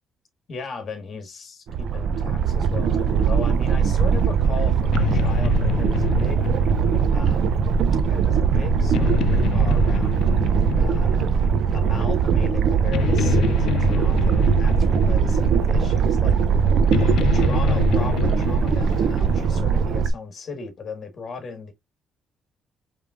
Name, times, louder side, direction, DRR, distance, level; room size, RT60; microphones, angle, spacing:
voice 1, 0.5-6.5 7.1-7.8 8.0-10.3 10.8-16.4 16.9-21.7, left 4 dB, 50° left, 1.6 m, -37 dB
sound 1, 1.7-20.1, right 6 dB, 65° right, 0.5 m, -20 dB
sound 2, 4.0-19.6, left 11 dB, 75° left, 0.4 m, -29 dB
5.0 x 3.3 x 2.5 m
cardioid pair, 95°, 0 cm